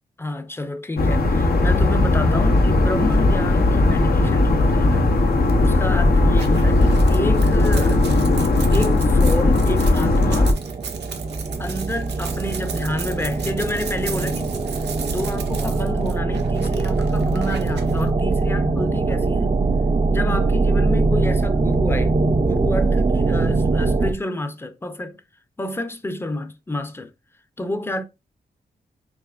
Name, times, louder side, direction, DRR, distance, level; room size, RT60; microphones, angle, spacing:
voice 1, 0.2-5.1 5.6-8.1 8.7-10.6 11.6-19.6 20.1-25.2 25.6-27.1 27.6-28.0, left 1 dB, 15° left, 0.6 m, -29 dB
sound 1, 1.0-10.5, left 2 dB, 65° left, 0.8 m, -17 dB
sound 2, 6.3-18.0, right 7 dB, 85° right, 0.7 m, -37 dB
sound 3, 7.9-24.1, right 3 dB, 30° right, 0.5 m, -22 dB
4.7 x 2.8 x 2.5 m
cardioid pair, 60°, 17 cm